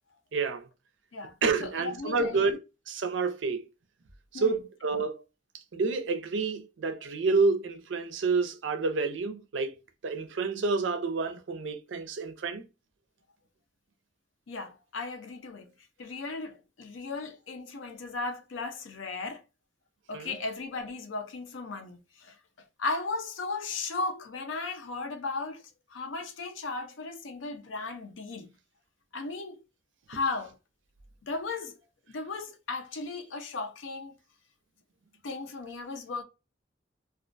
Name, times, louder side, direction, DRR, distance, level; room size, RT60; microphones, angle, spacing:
voice 1, 0.3-0.7 1.4-2.6 2.9-3.6 4.3-5.2 5.7-9.7 10.0-12.6 20.1-20.4, right 4 dB, 75° right, 0.5 m, -29 dB
voice 2, 1.1-2.6 4.3-4.6 14.5-15.7 16.0-19.4 20.1-22.4 22.8-25.6 25.9-28.5 29.1-29.6 30.1-30.6 31.3-31.8 32.1-34.2 35.2-36.2, left 3 dB, 90° left, 0.5 m, -36 dB
2.3 x 2.1 x 2.5 m
head